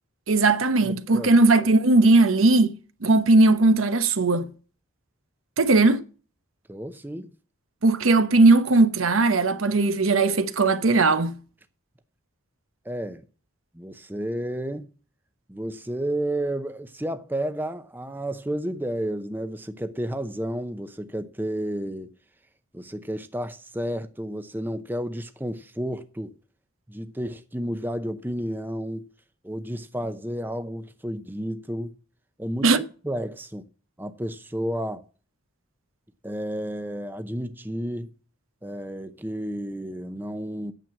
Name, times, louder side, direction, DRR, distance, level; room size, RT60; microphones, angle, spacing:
voice 1, 0.3-2.7 3.0-4.5 5.6-6.0 7.8-11.4 32.6-32.8, right 3 dB, 80° right, 0.9 m, -18 dB
voice 2, 0.8-1.3 1.6-1.7 6.7-7.3 12.8-13.2 13.7-14.9 15.5-22.1 22.7-26.3 26.9-29.1 29.4-31.9 32.4-33.7 34.0-35.0 36.2-38.1 38.6-40.7, right 1 dB, 10° right, 0.7 m, -31 dB
9.2 x 7.4 x 7.4 m
head